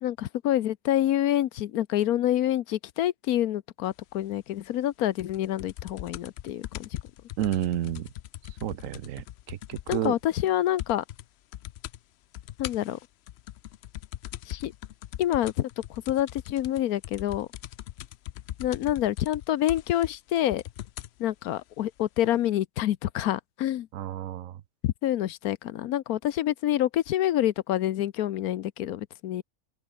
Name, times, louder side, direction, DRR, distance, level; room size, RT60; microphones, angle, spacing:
voice 1, 0.0-6.9 9.9-11.0 12.6-13.0 14.5-14.7 15.2-17.5 18.6-20.6 21.2-23.9 24.8-29.4, left 12 dB, 85° left, 1.2 m, -27 dB
sound 1, 5.2-10.2 10.5-10.6 10.8-11.2 11.5-12.0 12.3-21.2 22.0-22.1, left 12 dB, 65° left, 0.6 m, -40 dB
voice 2, 7.4-8.1 8.6-10.1 23.9-24.6, right 12 dB, 65° right, 1.1 m, -31 dB
open air
omnidirectional pair, 1.5 m